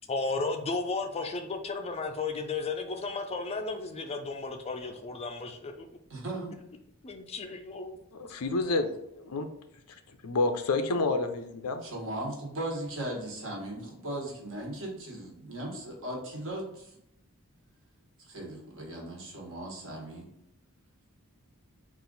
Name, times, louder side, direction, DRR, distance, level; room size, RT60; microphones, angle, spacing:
voice 1, 0.1-5.9 7.0-8.0, left 3 dB, 30° left, 6 dB, 0.4 m, -34 dB
voice 2, 6.1-6.5 11.8-16.9 18.2-20.3, right 1 dB, 65° right, -1 dB, 1.3 m, -37 dB
voice 3, 8.1-8.9 9.1-9.5 10.2-11.8, left 3 dB, 85° left, 7 dB, 0.5 m, -29 dB
4.0 x 2.5 x 3.9 m, 0.79 s
head